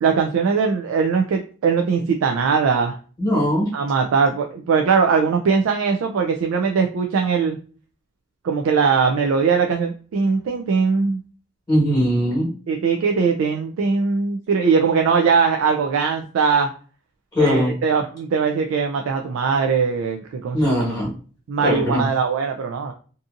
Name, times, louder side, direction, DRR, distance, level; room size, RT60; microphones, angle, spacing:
voice 1, 0.0-3.0 3.7-7.6 8.4-11.2 12.7-16.7 17.4-20.8 21.5-22.9, right 5 dB, 90° right, 4 dB, 0.3 m, -20 dB
voice 2, 3.2-3.7 11.7-12.5 17.3-17.7 20.5-21.1 21.6-22.1, equal, 20° left, -5 dB, 1.2 m, -20 dB
2.6 x 2.5 x 2.4 m, 0.40 s
head